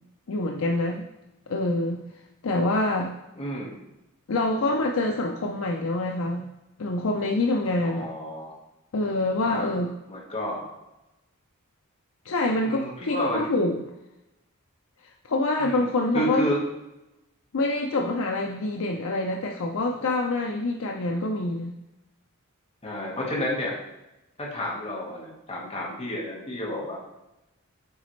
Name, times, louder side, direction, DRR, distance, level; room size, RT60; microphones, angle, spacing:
voice 1, 0.3-1.0 1.5-2.0 2.4-3.1 4.3-6.5 6.8-8.1 8.9-9.9 12.3-13.8 15.2-16.4 17.5-21.7, left 2 dB, 65° left, 1 dB, 0.5 m, -26 dB
voice 2, 3.4-3.7 7.8-8.5 9.4-9.8 10.1-10.6 12.6-13.5 15.6-15.8 16.1-16.6 22.8-23.7 24.4-27.0, equal, 30° left, -3 dB, 1.4 m, -30 dB
8.1 x 4.1 x 3.2 m, 0.94 s
head